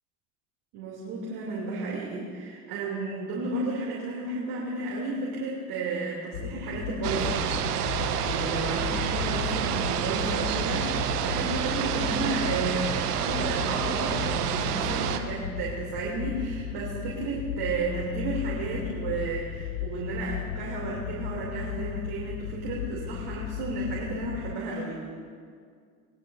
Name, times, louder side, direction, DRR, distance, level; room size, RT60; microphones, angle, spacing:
voice 1, 0.7-7.4 8.2-25.0, right 3 dB, 55° right, -5 dB, 2.9 m, -32 dB
sound 1, 6.3-24.6, left 12 dB, 80° left, 0.7 m, -36 dB
sound 2, 7.0-15.2, right 9 dB, 80° right, 0.9 m, -29 dB
19.0 x 12.5 x 2.6 m, 2.1 s
hypercardioid pair, 80°, 46 cm